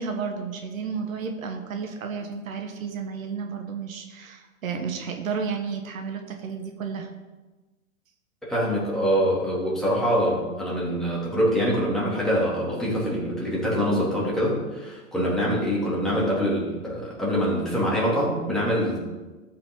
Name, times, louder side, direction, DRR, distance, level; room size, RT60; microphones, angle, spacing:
voice 1, 0.0-7.1, right 5 dB, 75° right, 4 dB, 1.5 m, -32 dB
voice 2, 8.5-19.0, equal, ahead, -7 dB, 2.9 m, -24 dB
13.0 x 5.7 x 3.9 m, 1.2 s
hypercardioid pair, 140°, 41 cm